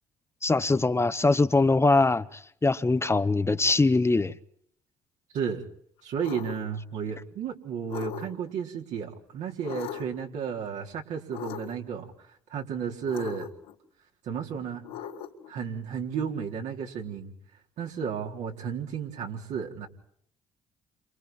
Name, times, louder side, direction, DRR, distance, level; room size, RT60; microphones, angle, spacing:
voice 1, 0.4-4.3, left 3 dB, 20° left, 1.2 m, -22 dB
voice 2, 5.3-5.7 6.0-12.1 12.5-13.5 14.2-14.8 15.5-17.3 17.8-19.9, right 7 dB, 70° right, 4.1 m, -33 dB
sound 1, 6.2-6.6 7.9-8.5 9.6-10.2 11.3-11.9 13.1-13.7 14.8-15.5, left 10 dB, 90° left, 3.5 m, -38 dB
30.0 x 27.5 x 4.5 m
supercardioid pair, 60°, 13 cm